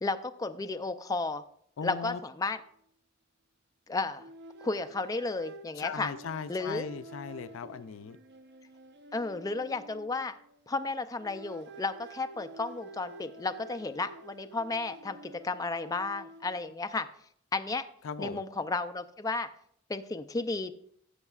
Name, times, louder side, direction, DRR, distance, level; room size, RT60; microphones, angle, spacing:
voice 1, 0.0-1.4 1.8-2.6 3.9-4.2 4.6-6.1 6.5-6.9 9.1-10.3 10.7-17.1 17.5-17.9 18.2-19.5 19.9-20.7, left 3 dB, 20° left, 9 dB, 0.4 m, -33 dB
voice 2, 1.8-2.2 5.8-8.2 18.0-18.4, left 6 dB, 75° left, 13 dB, 0.4 m, -38 dB
sound 1, 2.4-2.6 4.2-10.8 11.2-16.8, right 2 dB, 60° right, 0.7 m, -49 dB
16.5 x 7.0 x 2.4 m, 0.67 s
head